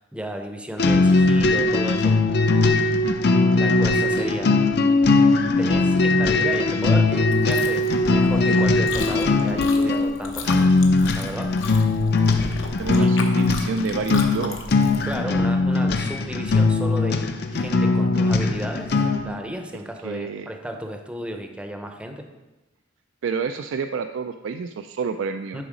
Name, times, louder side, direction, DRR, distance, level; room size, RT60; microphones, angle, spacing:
voice 1, 0.1-2.4 3.5-4.5 5.6-10.8 11.1-11.7 12.9-13.4 15.0-22.2 25.5-25.6, right 1 dB, 5° right, 4 dB, 0.6 m, -34 dB
sound 1, 0.8-19.3, left 3 dB, 55° left, 0.6 m, -20 dB
Chewing mastication, 7.3-15.1, left 3 dB, 75° left, 1.0 m, -35 dB
voice 2, 12.8-14.6 20.0-20.5 23.2-25.6, right 5 dB, 70° right, 8 dB, 0.3 m, -29 dB
11.0 x 4.0 x 5.0 m, 1.1 s
head